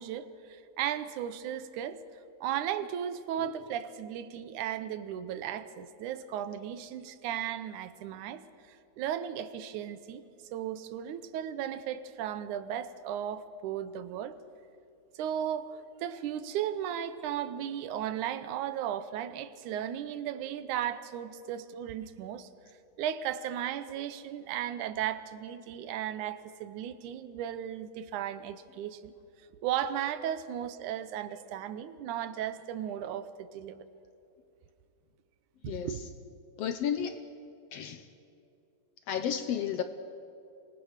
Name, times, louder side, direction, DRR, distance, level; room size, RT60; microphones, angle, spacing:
voice 1, 0.0-2.0 2.4-8.4 8.7-10.2 10.5-14.4 15.1-22.5 23.0-29.1 29.6-33.9 35.6-36.0, right 10 dB, 85° right, 13 dB, 2.3 m, -35 dB
voice 2, 35.6-36.0 36.6-37.2 37.7-38.1 39.1-39.8, left 9 dB, 70° left, 10 dB, 1.6 m, -32 dB
25.5 x 19.5 x 6.5 m, 2.7 s
omnidirectional pair, 3.4 m